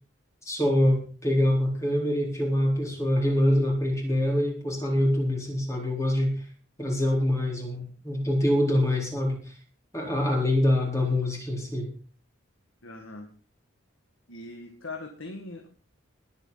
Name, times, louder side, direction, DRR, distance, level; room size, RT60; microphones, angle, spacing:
voice 1, 0.4-6.3 6.8-9.4 9.9-11.8, left 1 dB, 15° left, 0 dB, 4.0 m, -25 dB
voice 2, 12.8-13.3 14.3-15.7, left 2 dB, 75° left, 3 dB, 1.9 m, -40 dB
21.0 x 8.3 x 4.0 m, 0.41 s
head